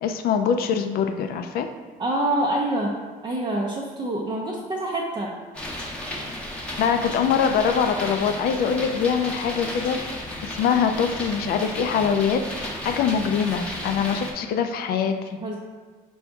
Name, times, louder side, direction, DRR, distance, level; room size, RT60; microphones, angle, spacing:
voice 1, 0.0-1.7 6.8-10.0 10.4-15.4, left 7 dB, 65° left, 6 dB, 0.4 m, -23 dB
voice 2, 2.0-5.4 15.4-15.6, right 1 dB, 25° right, -3 dB, 0.5 m, -26 dB
sound 1, 5.5-14.3, left 1 dB, 5° left, 0.8 m, -33 dB
4.6 x 2.6 x 3.5 m, 1.4 s
cardioid pair, 110°, 17 cm